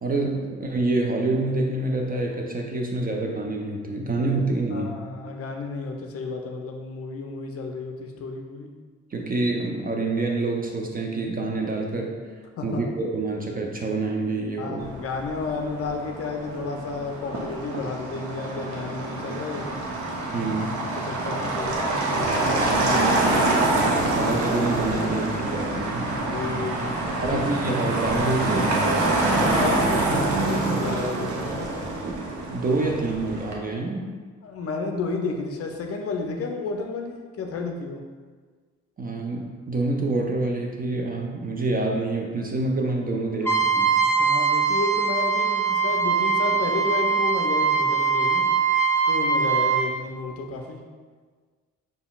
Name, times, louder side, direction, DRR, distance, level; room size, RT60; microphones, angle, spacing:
voice 1, 0.0-5.0 9.1-12.2 12.6-14.9 20.3-20.8 24.0-26.1 27.2-28.9 32.0-34.1 39.0-43.9, right 2 dB, 25° right, 1 dB, 0.5 m, -27 dB
voice 2, 4.7-8.7 12.6-12.8 14.6-19.8 21.0-24.2 26.2-27.4 29.3-31.7 34.4-38.0 44.2-48.5 49.1-50.8, left 4 dB, 40° left, 3 dB, 0.5 m, -32 dB
Motor vehicle (road), 14.8-33.5, right 2 dB, 45° right, 0.8 m, -26 dB
Trumpet, 43.4-49.8, right 5 dB, 5° left, 0.8 m, -22 dB
6.6 x 2.3 x 2.3 m, 1.5 s
figure-of-eight pair, 45°, 38 cm